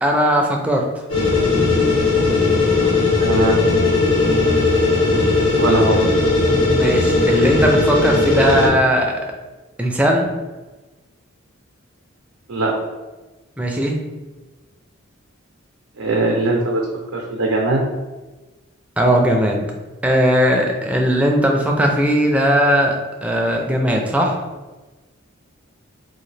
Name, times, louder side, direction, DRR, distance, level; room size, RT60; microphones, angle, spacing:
voice 1, 0.0-0.9 6.5-9.2 9.8-10.3 13.6-14.0 19.0-19.7 20.0-22.9 23.2-24.4, equal, 5° right, 0 dB, 0.4 m, -18 dB
sound 1, 1.1-8.7, left 3 dB, 85° left, 1.3 m, -17 dB
voice 2, 3.2-3.6 5.5-6.0 12.5-12.7 16.0-16.8 17.1-17.8, right 2 dB, 85° right, -2 dB, 0.6 m, -20 dB
3.8 x 2.5 x 3.2 m, 1.2 s
head